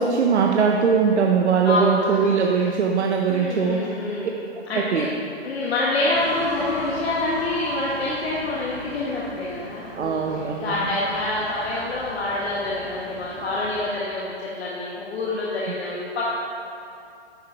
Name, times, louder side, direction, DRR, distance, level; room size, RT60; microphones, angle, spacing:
voice 1, 0.0-3.9 4.7-5.1 10.0-10.9, right 6 dB, 85° right, 1 dB, 0.8 m, -21 dB
voice 2, 1.6-2.2 3.3-4.3 4.7-5.1 5.4-16.2, left 2 dB, 65° left, -6 dB, 1.5 m, -26 dB
sound 1, 6.1-13.8, equal, 25° left, 2.0 m, -38 dB
10.5 x 4.8 x 4.7 m, 2.6 s
hypercardioid pair, 150°, 33 cm